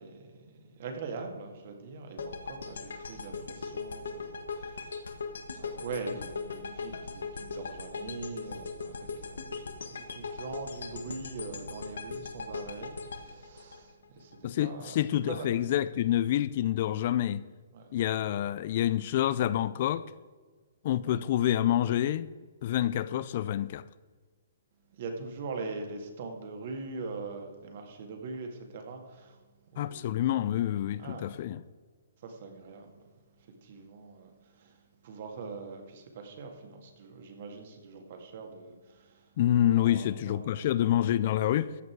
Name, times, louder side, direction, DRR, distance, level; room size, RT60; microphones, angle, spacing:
voice 1, 0.0-5.1 5.5-15.0 15.3-15.8 17.7-17.9 21.0-21.2 25.0-29.4 29.7-30.1 31.0-31.4 32.2-33.0 33.4-34.8 35.0-39.2 39.8-40.6, right 4 dB, 45° right, 2.2 m, -42 dB
sound 1, 2.2-14.4, left 4 dB, 80° left, 1.5 m, -39 dB
voice 2, 14.4-17.4 17.9-20.0 20.8-22.3 22.6-23.8 29.8-31.6 39.4-41.7, left 12 dB, 40° left, 0.4 m, -27 dB
14.0 x 8.1 x 4.7 m
hypercardioid pair, 160°, 0 cm